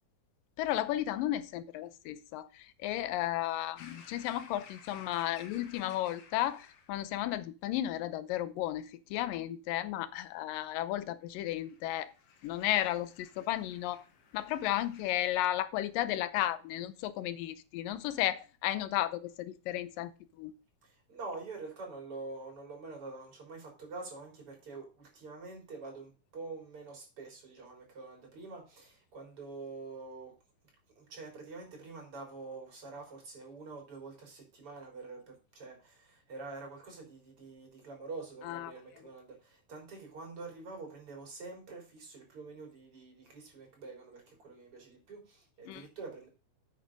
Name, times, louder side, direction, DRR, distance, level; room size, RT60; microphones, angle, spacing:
voice 1, 0.6-12.1 12.4-14.0 14.3-20.1 20.4-20.5 38.5-38.7 45.7-45.9, left 13 dB, 90° left, 2.4 m, -34 dB
sound 1, 3.8-7.2 11.6-15.3, left 6 dB, 60° left, 1.7 m, -56 dB
voice 2, 20.8-30.4 31.0-46.3, right 3 dB, 40° right, 4.4 m, -46 dB
8.6 x 6.5 x 5.1 m
omnidirectional pair, 3.8 m